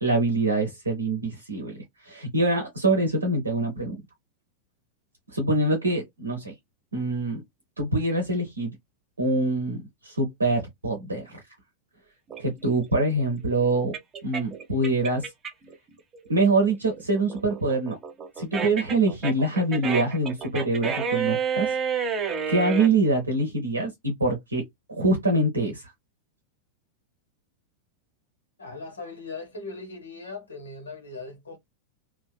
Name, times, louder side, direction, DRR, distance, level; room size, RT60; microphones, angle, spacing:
voice 1, 0.0-4.0 5.3-6.5 6.9-7.4 7.8-8.7 9.2-11.4 12.4-13.9 14.2-15.3 16.3-18.0 18.4-21.8 22.5-24.6 24.9-25.9, right 2 dB, 75° right, 0.6 m, -25 dB
sound 1, 12.3-15.7 16.1-22.9, right 6 dB, 25° right, 0.5 m, -30 dB
voice 2, 28.6-31.6, left 3 dB, 70° left, 1.0 m, -39 dB
2.5 x 2.2 x 2.2 m
figure-of-eight pair, 90°, 0 cm